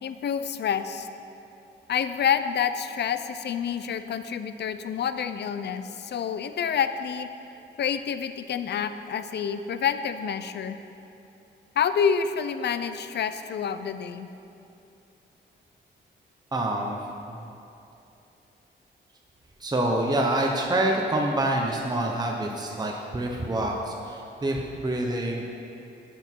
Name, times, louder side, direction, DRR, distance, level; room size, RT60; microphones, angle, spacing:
voice 1, 0.0-1.1 1.9-7.3 7.8-10.8 11.8-14.3, left 7 dB, 60° left, 11 dB, 0.5 m, -28 dB
voice 2, 16.5-17.0 17.3-17.4 19.6-25.4, right 1 dB, 20° right, 0 dB, 1.0 m, -26 dB
11.5 x 8.2 x 4.6 m, 2.8 s
cardioid pair, 105°, 20 cm